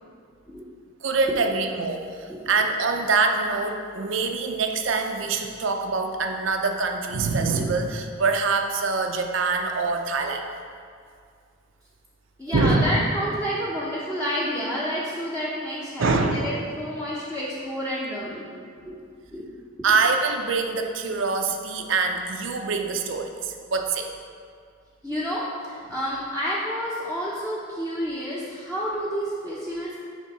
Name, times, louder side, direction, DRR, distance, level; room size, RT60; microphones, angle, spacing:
voice 1, 1.0-10.5 12.5-13.1 16.0-16.5 19.8-24.1, right 4 dB, 65° right, 4 dB, 0.5 m, -24 dB
voice 2, 12.4-18.5 18.8-18.9 19.3-19.5 25.0-30.0, equal, 10° left, -8 dB, 0.7 m, -29 dB
6.5 x 3.7 x 5.4 m, 2.2 s
head